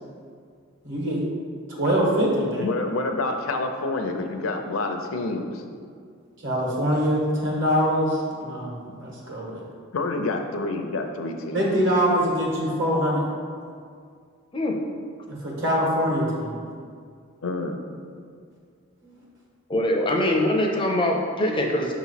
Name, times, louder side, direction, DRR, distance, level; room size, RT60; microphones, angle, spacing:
voice 1, 0.8-1.2 1.7-2.7 6.4-8.1 8.4-9.6 11.5-13.2 15.3-16.6 19.0-19.1, equal, 60° right, -3 dB, 1.4 m, -23 dB
voice 2, 2.6-5.6 9.9-11.7 17.4-17.8, left 2 dB, 75° left, 5 dB, 0.5 m, -28 dB
voice 3, 19.7-21.9, left 1 dB, 25° left, 1 dB, 0.4 m, -23 dB
6.2 x 3.0 x 5.6 m, 2.2 s
head